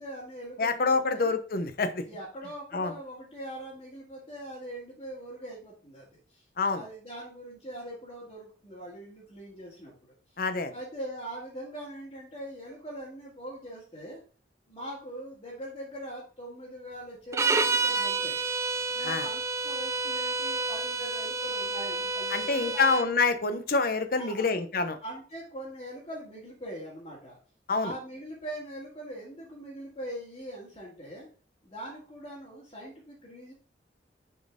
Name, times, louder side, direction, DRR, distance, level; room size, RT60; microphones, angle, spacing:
voice 1, 0.0-1.3 2.1-6.5 6.7-10.2 10.7-14.2 14.7-18.4 18.9-22.8 24.2-24.5 25.0-27.4 27.8-31.3 31.6-33.5, right 1 dB, 30° left, -7 dB, 2.0 m, -42 dB
voice 2, 0.6-2.0 2.7-2.9 6.6-6.8 10.4-10.7 19.0-19.3 22.3-25.0 27.7-27.9, left 4 dB, 55° left, 9 dB, 0.8 m, -27 dB
sound 1, 17.3-23.1, right 3 dB, 15° right, 0.3 m, -29 dB
7.0 x 4.4 x 3.6 m, 0.40 s
head